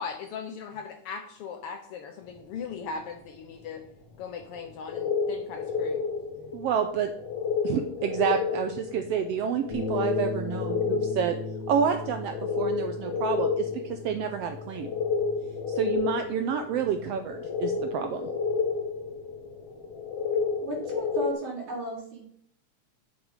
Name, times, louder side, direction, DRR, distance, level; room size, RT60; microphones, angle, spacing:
voice 1, 0.0-3.9 4.2-6.1 6.4-6.5, left 5 dB, 85° left, 6 dB, 1.3 m, -39 dB
sound 1, 4.5-4.6 4.9-21.3, left 5 dB, 65° left, 1.8 m, -31 dB
voice 2, 6.5-7.1 7.6-11.4 11.7-14.9 15.7-18.3, right 8 dB, 80° right, 7 dB, 1.4 m, -29 dB
Bass guitar, 9.7-16.0, left 2 dB, 35° left, 1.5 m, -39 dB
voice 3, 20.6-22.3, right 1 dB, 45° right, -5 dB, 3.9 m, -34 dB
8.0 x 7.3 x 5.0 m, 0.64 s
omnidirectional pair, 3.4 m